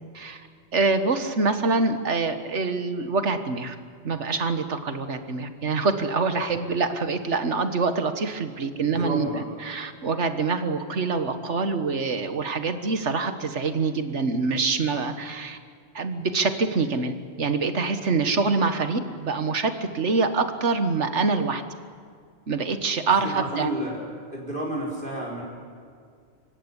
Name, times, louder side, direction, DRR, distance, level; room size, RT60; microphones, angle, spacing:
voice 1, 0.7-3.8 4.0-15.6 15.9-21.6 22.5-23.7, right 4 dB, 80° right, 9 dB, 1.8 m, -25 dB
voice 2, 8.8-9.5 23.2-24.0 24.3-25.4, equal, 50° right, -3 dB, 4.7 m, -31 dB
26.0 x 16.0 x 9.8 m, 2.2 s
omnidirectional pair, 1.2 m